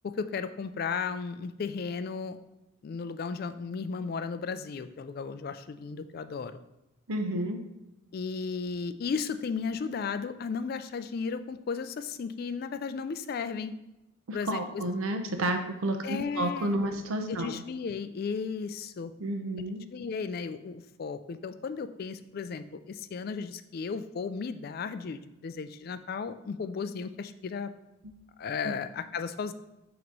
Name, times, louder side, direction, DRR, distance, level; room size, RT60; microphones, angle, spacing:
voice 1, 0.1-2.4 2.8-6.6 8.1-13.7 14.3-14.8 16.0-17.0 17.3-19.1 19.9-27.7 28.4-29.5, left 5 dB, 45° left, 11 dB, 0.3 m, -35 dB
voice 2, 7.1-7.6 14.3-17.6 19.2-19.8 28.0-28.1 28.6-28.8, right 1 dB, 85° right, 6 dB, 0.8 m, -31 dB
6.1 x 3.0 x 5.3 m, 0.97 s
head